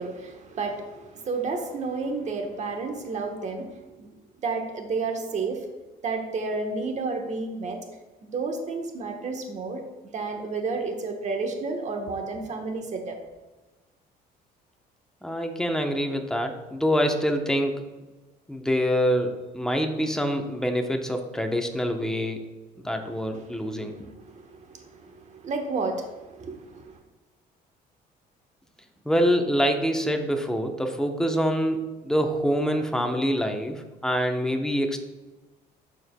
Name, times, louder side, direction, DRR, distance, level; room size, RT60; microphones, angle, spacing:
voice 1, 0.0-5.7 6.0-7.8 8.2-9.8 10.1-13.2 23.3-27.0, right 4 dB, 45° right, 3 dB, 1.2 m, -31 dB
voice 2, 15.2-17.8 18.5-22.5 22.8-24.1 29.0-35.0, equal, 5° left, 4 dB, 0.8 m, -25 dB
13.0 x 4.6 x 2.2 m, 1.2 s
cardioid pair, 110°, 17 cm